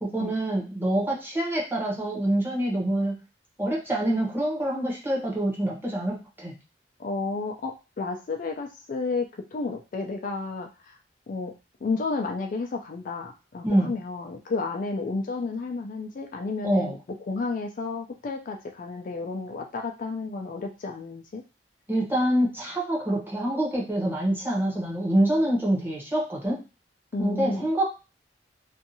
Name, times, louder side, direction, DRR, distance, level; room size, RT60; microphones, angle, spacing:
voice 1, 0.0-3.1 3.6-6.5 13.6-14.0 16.6-16.9 21.9-26.6 27.2-27.9, right 1 dB, 10° right, -4 dB, 0.9 m, -26 dB
voice 2, 7.0-11.0 11.3-11.5 11.8-21.4 27.1-27.7, left 3 dB, 45° left, 4 dB, 0.3 m, -32 dB
2.6 x 2.4 x 2.7 m, 0.29 s
head